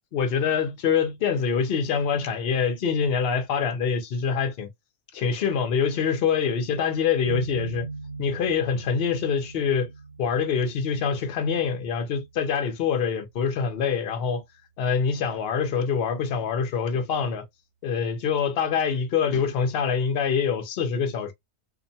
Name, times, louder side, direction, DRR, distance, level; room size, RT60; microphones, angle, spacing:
voice 1, 0.1-4.7 5.1-7.9 8.2-9.9 10.2-14.4 14.8-17.4 17.8-21.3, left 6 dB, 55° left, 0.7 m, -25 dB
sound 1, 7.2-13.0, right 4 dB, 65° right, 1.0 m, -40 dB
2.5 x 2.1 x 2.6 m
omnidirectional pair, 1.4 m